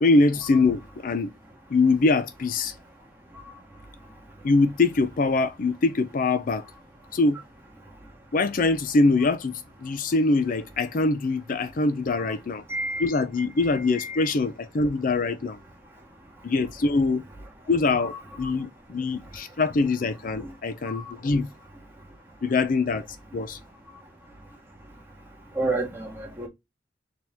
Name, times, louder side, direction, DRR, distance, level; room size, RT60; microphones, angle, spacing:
voice 1, 0.0-1.3 1.7-2.8 4.4-6.6 7.1-7.4 8.3-12.6 13.0-15.6 16.4-17.2 17.7-21.5 22.4-23.1 23.3-23.6, left 3 dB, 50° left, 0.4 m, -23 dB
voice 2, 12.7-13.1 25.6-26.5, right 2 dB, 15° right, 1.6 m, -28 dB
4.5 x 2.9 x 3.4 m
head